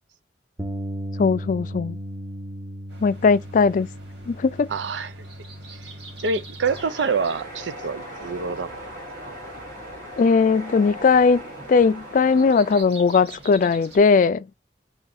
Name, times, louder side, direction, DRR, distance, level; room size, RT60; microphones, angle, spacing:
Bass guitar, 0.6-6.8, equal, 20° right, 0.8 m, -36 dB
voice 1, 1.2-2.0 3.0-3.9 4.3-4.7 10.2-11.4 11.7-14.6, left 5 dB, 45° left, 0.3 m, -19 dB
sound 1, 2.9-14.0, right 2 dB, 65° right, 1.9 m, -46 dB
voice 2, 4.7-5.3 5.8-5.9 6.2-8.7 9.2-9.3, right 4 dB, 90° right, 0.5 m, -26 dB
sound 2, 6.6-12.8, equal, 50° right, 2.4 m, -38 dB
4.7 x 2.4 x 4.0 m
head